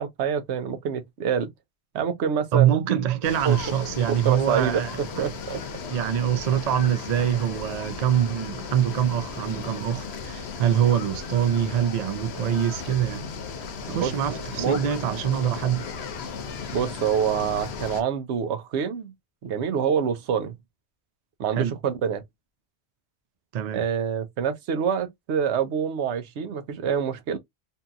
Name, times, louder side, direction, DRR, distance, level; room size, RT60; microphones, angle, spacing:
voice 1, 0.0-1.5 1.9-2.7 3.4-3.6 4.1-5.6 13.9-14.8 16.7-19.1 19.4-20.6 21.4-22.2 23.7-27.4, right 7 dB, 85° right, 0.9 m, -26 dB
voice 2, 2.5-4.9 5.9-13.3 13.9-15.8 21.6-21.7 23.5-23.8, right 10 dB, 60° right, 0.4 m, -24 dB
sound 1, 3.2-18.0, left 5 dB, 75° left, 0.9 m, -36 dB
2.8 x 2.7 x 2.3 m
omnidirectional pair, 1.1 m